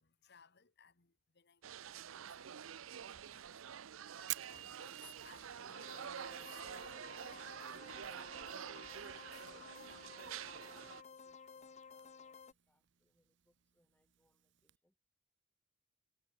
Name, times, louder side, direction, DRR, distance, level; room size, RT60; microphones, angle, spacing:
voice 1, 0.0-8.6 9.2-10.0, left 6 dB, 55° left, 1.6 m, -65 dB
sound 1, 1.6-11.0, right 8 dB, 85° right, 0.6 m, -48 dB
Fire, 3.2-14.8, right 16 dB, 60° right, 1.1 m, -54 dB
sound 2, 5.7-12.5, left 6 dB, 35° left, 0.5 m, -55 dB
voice 2, 9.5-14.9, left 1 dB, 10° left, 1.9 m, -79 dB
head